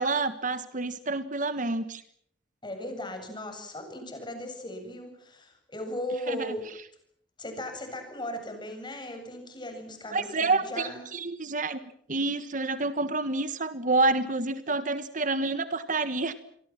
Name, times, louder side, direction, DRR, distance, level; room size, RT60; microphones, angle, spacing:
voice 1, 0.0-2.0 6.3-6.6 10.1-11.8 12.1-16.3, right 3 dB, 50° right, 12 dB, 1.5 m, -28 dB
voice 2, 2.6-6.6 7.4-11.0, left 1 dB, 25° left, 6 dB, 8.0 m, -37 dB
29.5 x 24.0 x 6.0 m, 0.67 s
head